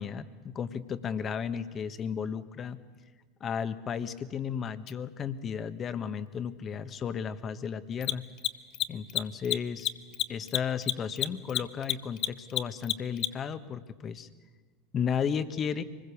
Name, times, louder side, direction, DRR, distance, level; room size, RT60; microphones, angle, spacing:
voice 1, 0.0-2.8 3.4-8.2 8.9-9.9 10.3-14.3 14.9-15.8, left 7 dB, 35° left, 12 dB, 1.3 m, -34 dB
Mechanisms, 4.9-5.0 7.9-13.5, left 14 dB, 50° left, 0.8 m, -30 dB
24.5 x 20.5 x 7.1 m, 1.4 s
hypercardioid pair, 85°, 0 cm